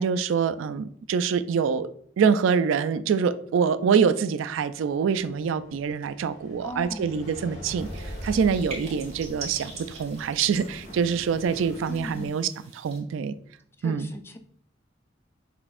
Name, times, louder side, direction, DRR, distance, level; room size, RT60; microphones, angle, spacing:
voice 1, 0.0-1.9 2.2-13.3 13.8-14.1, right 6 dB, 85° right, 12 dB, 0.3 m, -25 dB
sound 1, 4.7-12.3, equal, 60° left, 1.6 m, -42 dB
voice 2, 6.6-7.2 11.9-12.4 13.8-14.4, left 1 dB, 10° left, 7 dB, 0.3 m, -38 dB
sound 2, 7.8-13.0, right 4 dB, 35° right, 1.3 m, -44 dB
6.0 x 3.4 x 2.5 m, 0.63 s
head